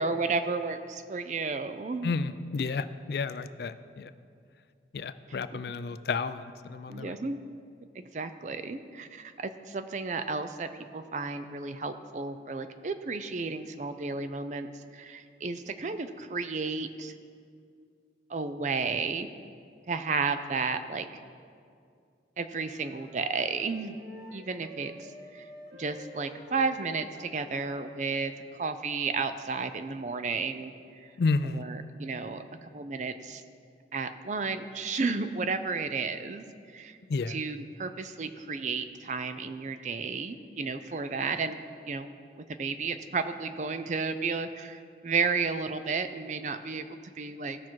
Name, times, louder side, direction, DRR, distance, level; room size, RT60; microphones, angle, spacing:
voice 1, 0.0-2.2 6.9-7.4 7.9-14.7 14.9-17.1 18.3-19.3 19.9-21.1 22.4-24.0 24.3-25.5 25.7-31.1 31.5-33.4 33.9-36.4 36.7-37.0 37.3-42.1 42.5-47.6, right 4 dB, 40° right, 10 dB, 0.4 m, -33 dB
voice 2, 2.0-4.1 4.9-7.2 31.2-31.6 37.1-37.4, left 4 dB, 60° left, 13 dB, 0.4 m, -31 dB
Wind instrument woodwind instrument, 22.6-28.3, equal, 65° right, 1.5 m, -49 dB
16.5 x 5.9 x 4.6 m, 2.3 s
head